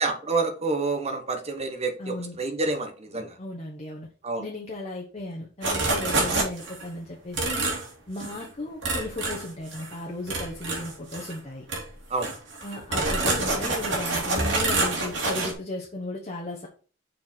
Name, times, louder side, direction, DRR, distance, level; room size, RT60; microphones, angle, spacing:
voice 1, 0.0-3.4 4.2-4.4 12.1-12.3, right 3 dB, 35° right, 1.3 m, -28 dB
voice 2, 2.0-2.4 3.4-4.1 4.4-7.7 8.1-11.7 12.6-16.7, left 2 dB, 35° left, 1.2 m, -35 dB
sound 1, 5.6-6.8 7.3-7.9 8.2-8.4 8.8-9.9 10.3-11.4 11.7-11.8 12.2-15.5, right 2 dB, 65° right, 2.8 m, -27 dB
6.7 x 4.6 x 4.4 m
head